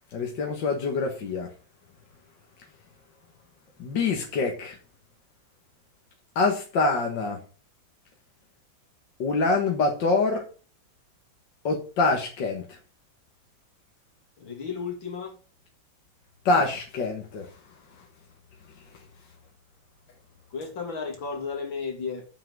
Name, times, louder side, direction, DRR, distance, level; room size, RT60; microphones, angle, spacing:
voice 1, 0.1-1.5 3.8-4.8 6.4-7.4 9.2-10.5 11.6-12.6 16.5-17.5, left 3 dB, 70° left, 2.2 m, -25 dB
voice 2, 14.4-15.4 20.5-22.3, left 5 dB, 85° left, 3.3 m, -33 dB
7.7 x 5.8 x 7.7 m
omnidirectional pair, 2.1 m